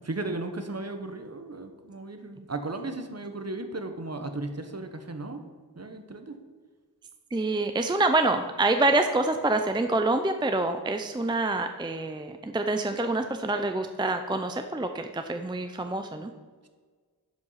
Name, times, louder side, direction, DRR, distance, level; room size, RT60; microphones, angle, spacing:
voice 1, 0.0-5.4 5.8-6.4, right 2 dB, 40° right, 7 dB, 1.0 m, -35 dB
voice 2, 7.3-16.3, right 2 dB, 10° right, 6 dB, 0.5 m, -26 dB
11.0 x 5.3 x 5.7 m, 1.5 s
wide cardioid pair, 80°, 39 cm